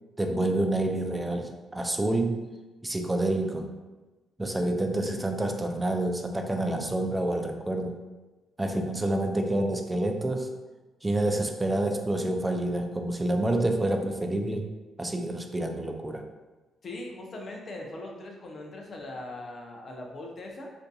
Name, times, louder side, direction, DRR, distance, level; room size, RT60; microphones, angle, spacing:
voice 1, 0.2-2.5 2.8-3.7 4.4-8.0 8.6-10.5 11.0-14.7 15.0-16.2, right 1 dB, 15° right, 4 dB, 0.3 m, -28 dB
voice 2, 16.8-20.7, left 2 dB, 45° left, 0 dB, 0.5 m, -40 dB
2.5 x 2.5 x 2.3 m, 1.2 s
cardioid pair, 90°, 0 cm